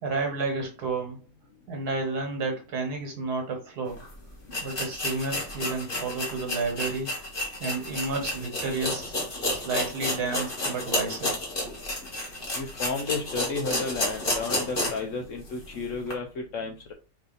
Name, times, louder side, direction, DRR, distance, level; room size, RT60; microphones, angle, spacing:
voice 1, 0.0-1.2 1.7-4.0 4.6-7.1 7.6-9.1 9.5-11.4, right 3 dB, 65° right, 2 dB, 1.8 m, -31 dB
sound 1, 4.0-4.1 4.5-15.1 15.5-15.6 16.1-16.2, left 1 dB, 35° left, 1.5 m, -31 dB
voice 2, 12.5-16.9, left 4 dB, 65° left, 3 dB, 0.8 m, -32 dB
4.8 x 2.7 x 3.9 m, 0.33 s
omnidirectional pair, 1.8 m